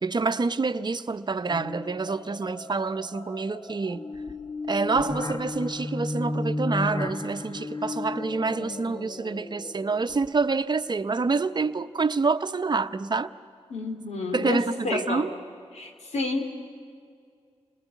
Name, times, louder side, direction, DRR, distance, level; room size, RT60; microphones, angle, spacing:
voice 1, 0.0-4.0 4.7-13.3 14.3-15.3, right 4 dB, 40° right, 0.9 m, -27 dB
sound 1, 1.5-10.6, left 2 dB, 40° left, 1.2 m, -34 dB
voice 2, 13.7-15.3 15.7-16.5, left 2 dB, 90° left, 2.7 m, -30 dB
27.5 x 19.5 x 9.4 m
cardioid pair, 60°, 11 cm